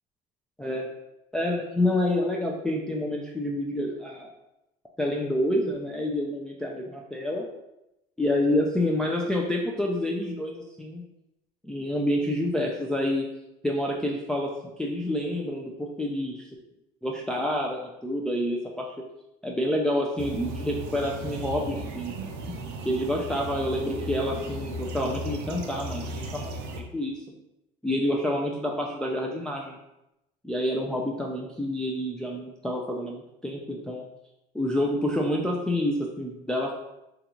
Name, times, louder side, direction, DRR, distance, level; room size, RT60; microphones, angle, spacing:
voice 1, 0.6-0.9 1.3-4.3 5.0-7.5 8.2-11.0 11.6-13.3 13.6-14.5 14.8-16.5 17.0-19.0 19.4-22.1 22.8-27.2 27.8-29.8 30.4-34.0 34.5-36.7, left 1 dB, 5° left, -2 dB, 0.3 m, -28 dB
sound 1, 20.2-26.8, right 1 dB, 65° right, 0.5 m, -36 dB
3.8 x 2.3 x 2.9 m, 0.90 s
supercardioid pair, 105°, 19 cm